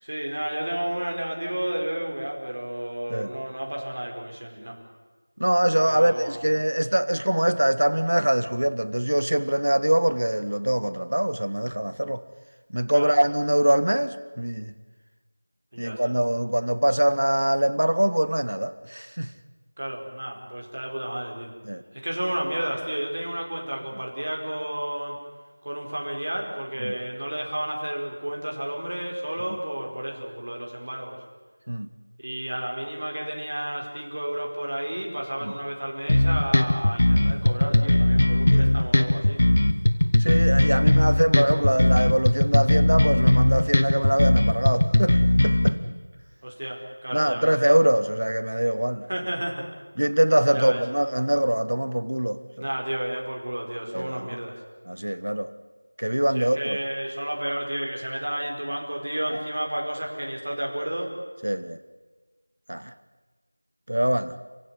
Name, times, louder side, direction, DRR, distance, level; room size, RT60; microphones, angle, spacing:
voice 1, 0.0-4.8 5.8-6.5 12.9-13.1 15.7-16.2 19.8-21.5 21.9-25.2 25.6-31.2 32.2-39.4 46.4-47.5 49.1-49.7 50.5-50.8 52.6-54.6 56.3-61.1, right 1 dB, 40° right, 4.8 m, -31 dB
voice 2, 5.4-12.2 12.7-14.7 15.8-19.3 21.7-21.8 26.8-26.9 31.7-31.9 35.5-35.6 38.5-38.8 40.2-45.2 45.4-45.8 47.1-49.1 50.0-52.4 53.9-54.3 54.9-55.5 56.0-56.8 61.4-61.8 62.7-62.9 63.9-64.3, right 1 dB, 85° right, 1.7 m, -23 dB
sound 1, 36.1-45.7, left 1 dB, 35° left, 1.1 m, -19 dB
28.5 x 16.0 x 9.7 m
figure-of-eight pair, 180°, 0 cm